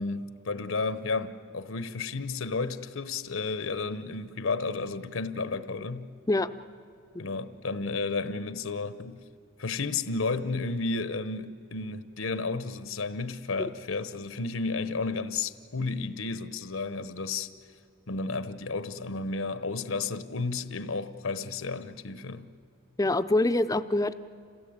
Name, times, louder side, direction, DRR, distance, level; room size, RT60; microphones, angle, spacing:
voice 1, 0.0-6.1 7.2-9.2 9.6-17.5 18.1-22.5, left 3 dB, 80° left, 0.9 m, -32 dB
voice 2, 23.0-24.1, left 2 dB, 15° left, 0.5 m, -24 dB
27.5 x 17.0 x 8.7 m
head